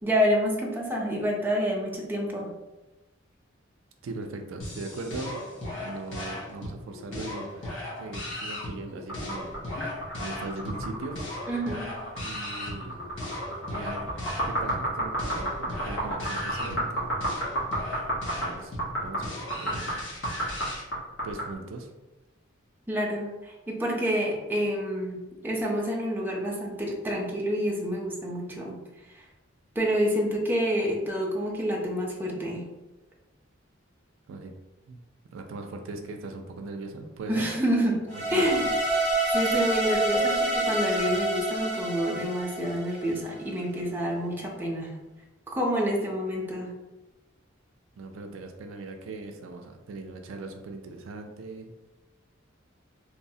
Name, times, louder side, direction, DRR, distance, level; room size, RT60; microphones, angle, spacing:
voice 1, 0.0-2.5 11.5-11.9 22.9-28.8 29.8-32.6 37.3-38.0 38.3-38.7 39.3-44.9 45.5-46.7, equal, 10° right, -2 dB, 0.4 m, -28 dB
voice 2, 4.0-5.3 5.6-9.5 10.2-11.2 12.2-13.0 13.7-14.2 14.4-17.1 18.4-20.0 21.2-21.9 34.3-34.5 34.9-35.0 35.3-37.5 37.8-38.5 48.0-51.8, right 3 dB, 80° right, 4 dB, 0.3 m, -39 dB
sound 1, 4.6-20.8, left 1 dB, 70° left, 0.8 m, -37 dB
sound 2, 9.1-21.5, right 1 dB, 90° left, 1.1 m, -32 dB
sound 3, 38.1-43.3, right 2 dB, 35° left, 0.9 m, -27 dB
3.0 x 2.0 x 2.6 m, 1.0 s
head